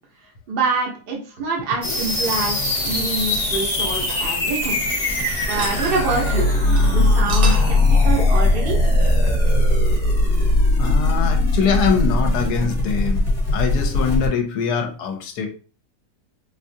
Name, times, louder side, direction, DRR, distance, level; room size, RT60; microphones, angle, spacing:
voice 1, 0.2-4.8 5.5-6.5 6.9-7.8 8.0-8.8, right 3 dB, 40° right, -1 dB, 0.9 m, -25 dB
sound 1, 1.8-14.3, left 2 dB, 30° left, 1.1 m, -19 dB
sound 2, 3.5-5.1 5.4-6.0 6.3-6.4 6.8-6.9 7.1-7.8, right 3 dB, 70° right, 1.3 m, -32 dB
voice 2, 10.8-13.3 13.5-15.5, left 6 dB, 75° left, 5 dB, 1.2 m, -23 dB
4.3 x 2.4 x 2.6 m, 0.36 s
omnidirectional pair, 1.8 m